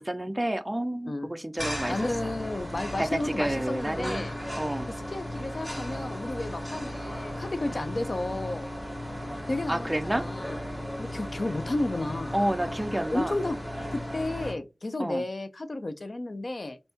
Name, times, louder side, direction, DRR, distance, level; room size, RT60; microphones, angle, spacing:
voice 1, 0.0-2.0 3.0-4.2 4.6-4.9 9.7-10.3 12.3-13.4 15.0-15.2, right 1 dB, 20° right, 0.3 m, -29 dB
sound 1, 1.6-14.5, equal, 15° left, 1.7 m, -36 dB
voice 2, 1.9-4.3 4.9-8.7 9.5-10.6 11.0-12.3 13.1-13.6 13.9-16.8, left 2 dB, 55° left, 0.4 m, -32 dB
3.4 x 2.6 x 2.8 m
wide cardioid pair, 70°, 0 cm